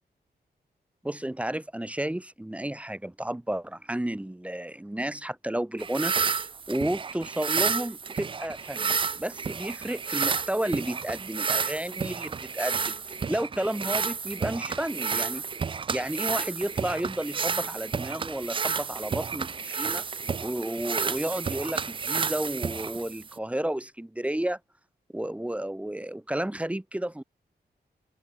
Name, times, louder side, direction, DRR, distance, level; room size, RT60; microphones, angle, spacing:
voice 1, 1.0-6.1 6.7-13.0 13.3-15.4 15.9-20.0 20.4-24.6 25.1-27.2, right 1 dB, 5° right, 1.3 m, -32 dB
sound 1, 5.8-23.4, right 5 dB, 30° right, 0.4 m, -31 dB
open air
wide cardioid pair, 130°, 17 cm